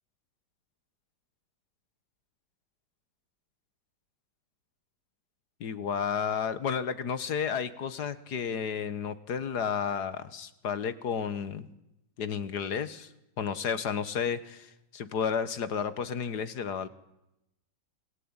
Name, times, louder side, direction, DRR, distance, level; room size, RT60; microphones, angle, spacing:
voice 1, 5.6-11.7 12.2-13.1 13.4-16.9, left 7 dB, 65° left, 13 dB, 1.8 m, -32 dB
28.0 x 21.0 x 8.9 m, 0.88 s
omnidirectional pair, 1.9 m